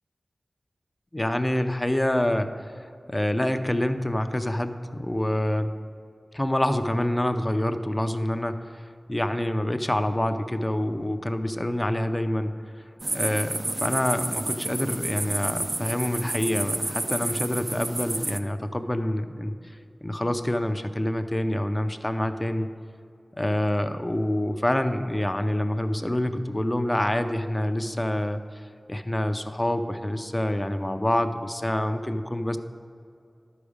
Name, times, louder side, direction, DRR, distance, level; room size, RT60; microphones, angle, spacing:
voice 1, 1.1-5.8 6.3-8.8 9.1-12.8 13.1-19.5 20.0-22.7 23.3-32.6, left 1 dB, 20° left, 8 dB, 0.5 m, -27 dB
sound 1, 13.0-18.4, right 2 dB, 45° right, 0.5 m, -30 dB
12.0 x 4.9 x 5.1 m, 2.5 s
wide cardioid pair, 60°, 0 cm